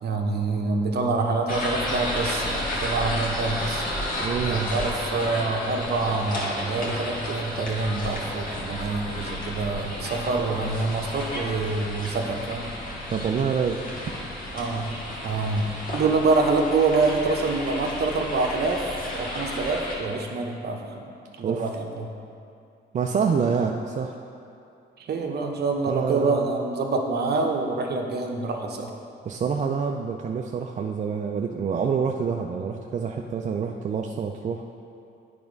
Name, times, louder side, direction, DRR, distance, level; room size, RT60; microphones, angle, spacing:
voice 1, 0.0-3.8 4.5-12.7 14.5-15.0 15.2-18.9 19.1-21.1 21.4-22.1 25.0-28.9, right 3 dB, 55° right, 2 dB, 0.8 m, -26 dB
sound 1, 1.5-19.9, left 1 dB, 45° left, 1.6 m, -32 dB
Drill, 3.7-15.7, left 2 dB, 10° left, 1.3 m, -45 dB
voice 2, 4.2-4.6 13.1-13.8 21.4-21.7 22.9-24.1 25.9-26.6 29.3-34.6, right 6 dB, 40° right, 2 dB, 0.4 m, -27 dB
8.5 x 3.5 x 5.2 m, 2.5 s
cardioid pair, 90°, 20 cm